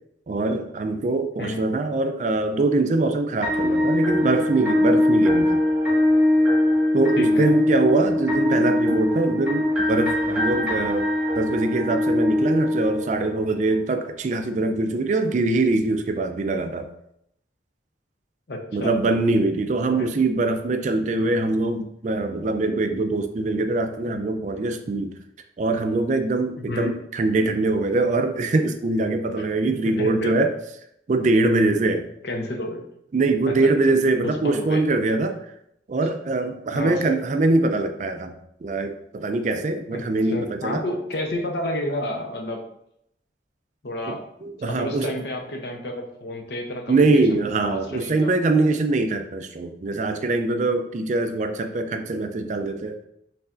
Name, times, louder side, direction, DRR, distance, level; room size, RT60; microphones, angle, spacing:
voice 1, 0.3-5.6 6.9-11.1 11.4-16.9 18.7-25.1 25.6-30.5 31.1-32.1 33.1-35.4 35.9-38.3 38.6-40.8 44.1-45.1 46.9-53.0, right 2 dB, 40° right, 7 dB, 0.3 m, -23 dB
sound 1, 3.4-13.5, left 1 dB, 5° right, 0.9 m, -21 dB
voice 2, 7.2-7.6 18.5-18.9 19.9-20.1 21.2-21.3 26.7-27.0 29.4-30.3 32.2-32.8 33.5-33.7 34.2-34.8 36.7-37.0 39.9-40.0 40.3-42.6 43.8-44.2 44.6-48.3, left 1 dB, 60° left, 2 dB, 0.7 m, -31 dB
5.4 x 3.4 x 2.5 m, 0.76 s
head